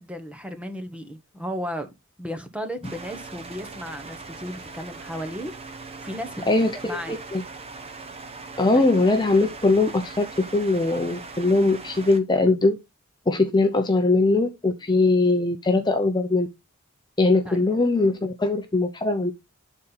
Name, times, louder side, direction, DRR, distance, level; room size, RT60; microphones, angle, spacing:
voice 1, 0.0-1.9 2.2-5.5 6.0-7.2 8.7-8.9 17.4-17.6, equal, 5° right, 1.0 m, -34 dB
sound 1, 2.8-12.2, right 3 dB, 30° right, 1.1 m, -40 dB
voice 2, 6.5-7.4 8.6-12.8 13.3-16.5 17.2-19.3, left 2 dB, 20° left, 0.6 m, -21 dB
8.1 x 4.3 x 4.0 m
head